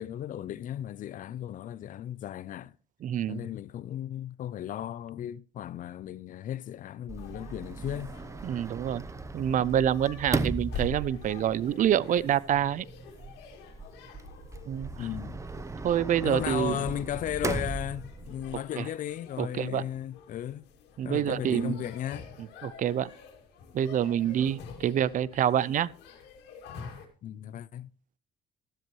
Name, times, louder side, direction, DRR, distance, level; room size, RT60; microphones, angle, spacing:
voice 1, 0.0-2.7 3.3-8.1 15.0-15.4 16.2-20.7 21.0-22.3 27.2-27.9, left 11 dB, 50° left, 0.5 m, -35 dB
voice 2, 3.0-3.4 8.4-9.0 9.3-12.8 14.7-14.9 15.8-16.8 19.4-19.8 21.0-21.8 22.6-23.1 23.7-25.9, right 10 dB, 50° right, 0.5 m, -27 dB
Sliding door, 7.1-18.6, right 3 dB, 20° right, 0.7 m, -37 dB
sound 1, 7.2-27.1, left 4 dB, 85° left, 2.4 m, -47 dB
13.0 x 12.0 x 3.1 m
cardioid pair, 110°, 17 cm